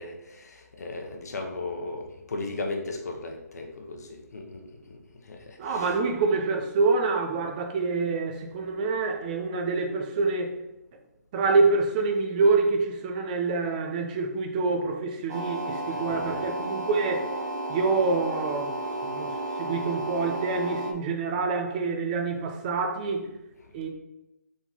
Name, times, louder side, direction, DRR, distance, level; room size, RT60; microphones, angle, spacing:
voice 1, 0.0-6.0 15.9-16.5 23.6-23.7, left 2 dB, 65° left, 3 dB, 0.9 m, -37 dB
voice 2, 5.6-10.5 11.3-17.3 17.7-18.8 19.0-19.3 19.6-23.3 23.7-23.9, right 4 dB, 30° right, 4 dB, 0.5 m, -26 dB
sound 1, 15.3-20.9, right 1 dB, 65° right, 0.8 m, -32 dB
4.2 x 3.8 x 2.9 m, 0.93 s
figure-of-eight pair, 145°, 9 cm